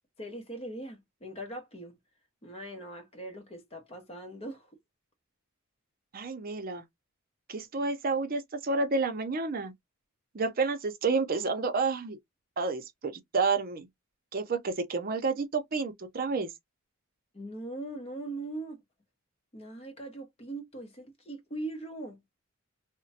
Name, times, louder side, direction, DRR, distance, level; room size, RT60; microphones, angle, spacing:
voice 1, 0.2-2.0 2.4-4.7 17.3-18.8 19.5-22.2, right 2 dB, 30° left, 0.9 m, -40 dB
voice 2, 6.1-6.8 7.5-9.7 10.3-12.2 12.6-13.9 14.3-16.5, right 4 dB, 45° right, 0.6 m, -30 dB
3.0 x 2.1 x 2.7 m
head